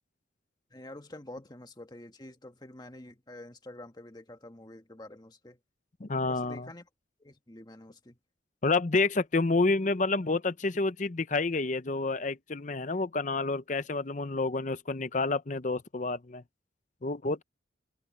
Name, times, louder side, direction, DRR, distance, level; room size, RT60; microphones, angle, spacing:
voice 1, 0.7-5.6 6.2-6.9 7.2-8.2, left 1 dB, 20° left, 1.5 m, -47 dB
voice 2, 6.0-6.7 8.6-16.4 17.0-17.4, left 3 dB, 40° left, 0.7 m, -29 dB
open air
head